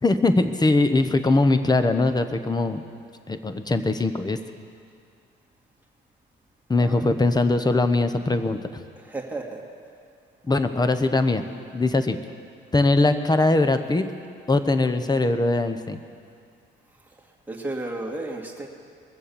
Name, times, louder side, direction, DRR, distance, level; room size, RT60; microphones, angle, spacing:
voice 1, 0.0-2.8 3.3-4.4 6.7-8.8 10.4-11.4 11.7-12.2 12.7-14.0 14.5-16.0, left 2 dB, 20° left, 9 dB, 0.9 m, -21 dB
voice 2, 9.0-9.6 17.5-18.7, right 2 dB, 10° right, -1 dB, 2.2 m, -33 dB
21.5 x 7.6 x 7.0 m, 2.3 s
cardioid pair, 90°, 20 cm